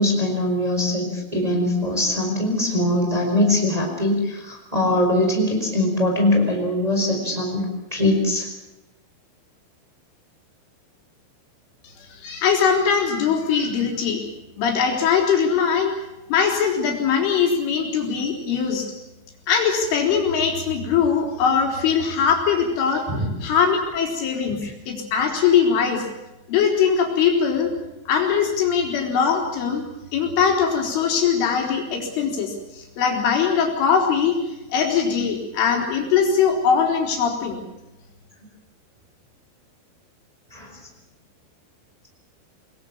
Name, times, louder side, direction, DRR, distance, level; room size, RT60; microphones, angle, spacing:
voice 1, 0.0-7.7 7.9-8.5 23.1-23.3 24.6-24.7 40.5-40.7, left 1 dB, 10° right, 1 dB, 4.1 m, -22 dB
voice 2, 12.0-14.2 14.6-15.9 16.3-18.9 19.5-23.1 23.4-24.6 24.9-26.1 26.5-27.7 28.1-29.8 30.1-34.3 34.7-37.7, left 6 dB, 90° left, 2 dB, 6.3 m, -21 dB
24.0 x 20.5 x 7.3 m, 0.97 s
omnidirectional pair, 5.4 m